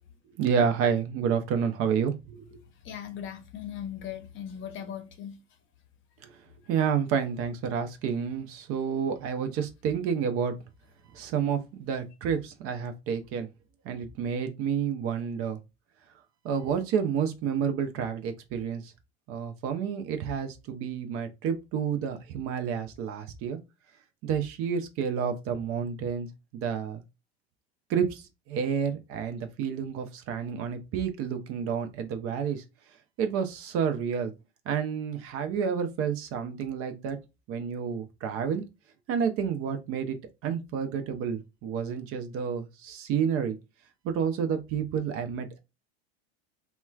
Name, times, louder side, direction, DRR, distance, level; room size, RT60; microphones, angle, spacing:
voice 1, 0.4-2.5 6.2-6.3 6.7-10.5 11.1-13.5 13.8-15.6 16.4-18.9 19.3-23.6 24.2-26.3 26.5-27.0 27.9-32.6 33.2-34.3 34.7-37.2 37.5-38.6 39.1-40.2 40.4-43.6 44.0-45.6, right 7 dB, 45° right, 0.6 m, -29 dB
voice 2, 2.8-5.4, left 9 dB, 40° left, 0.7 m, -38 dB
3.0 x 2.2 x 2.3 m
hypercardioid pair, 95°, 32 cm